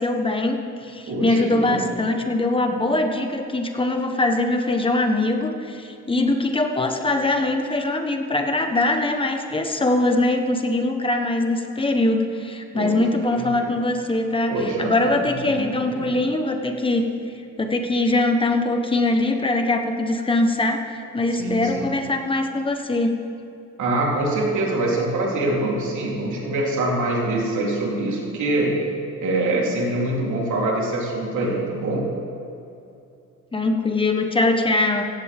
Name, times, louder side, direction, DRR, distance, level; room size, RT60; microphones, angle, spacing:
voice 1, 0.0-14.5 14.8-17.1 17.6-23.1 33.5-35.1, left 2 dB, 20° left, 4 dB, 1.2 m, -22 dB
voice 2, 1.1-2.0 12.7-13.0 13.3-13.7 14.5-15.0 15.3-16.1 21.4-21.9 23.8-28.8 29.2-32.1, right 2 dB, 75° right, -4 dB, 3.6 m, -24 dB
16.5 x 15.5 x 3.6 m, 2.7 s
cardioid pair, 140°, 29 cm